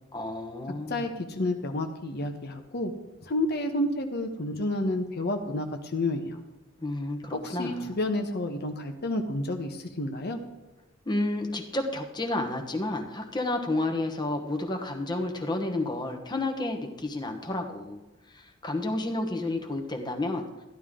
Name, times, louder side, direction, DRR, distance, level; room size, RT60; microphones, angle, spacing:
voice 1, 0.1-1.1 6.8-7.9 11.0-18.0 18.3-20.4, left 2 dB, 20° left, 3 dB, 1.2 m, -31 dB
voice 2, 0.9-2.9 3.2-6.4 7.3-10.4, left 1 dB, 55° left, 3 dB, 1.1 m, -30 dB
14.0 x 11.5 x 3.8 m, 1.0 s
head